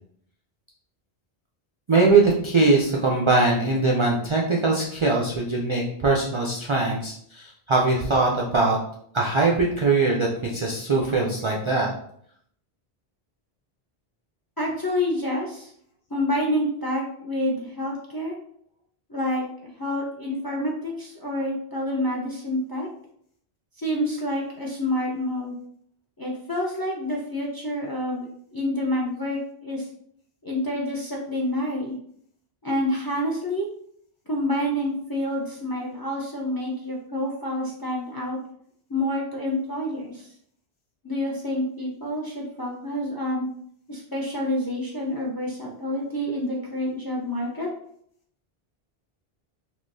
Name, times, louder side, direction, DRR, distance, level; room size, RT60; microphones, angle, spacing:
voice 1, 1.9-8.8 9.1-11.9, right 3 dB, 50° right, -2 dB, 0.3 m, -21 dB
voice 2, 14.6-15.7 16.1-18.4 19.1-19.5 19.8-22.9 23.8-25.5 26.2-29.9 30.4-32.0 32.6-33.7 34.3-38.4 38.9-40.3 41.0-43.4 43.9-47.7, left 1 dB, 35° left, -2 dB, 0.4 m, -28 dB
3.6 x 2.8 x 2.6 m, 0.66 s
omnidirectional pair, 1.1 m